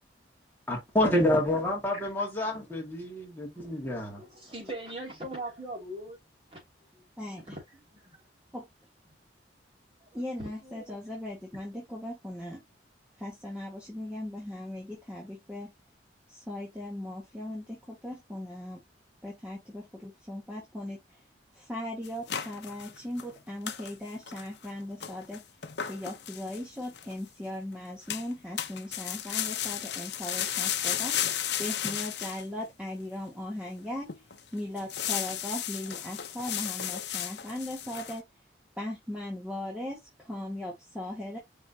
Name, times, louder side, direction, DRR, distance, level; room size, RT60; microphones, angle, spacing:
voice 1, 0.7-4.2, left 1 dB, 10° left, 1.8 m, -28 dB
voice 2, 3.7-6.2 6.5-6.6 6.9-7.0 7.9-8.2 10.0-10.1 10.6-11.0, right 1 dB, 30° right, 2.5 m, -41 dB
voice 3, 7.2-7.6 8.5-8.7 10.1-12.6 13.2-15.7 16.3-18.8 19.2-21.2 21.5-25.4 25.8-31.2 31.6-34.1 34.5-38.2 38.8-41.4, left 1 dB, 5° right, 1.5 m, -38 dB
sound 1, 22.0-23.3 23.7-23.9 24.3-24.7 25.0-27.1 28.1-28.3 28.6-32.4 33.0-33.1 33.7-33.8 34.1-34.4 34.8-38.2, left 10 dB, 65° left, 0.7 m, -34 dB
5.3 x 3.6 x 2.7 m
head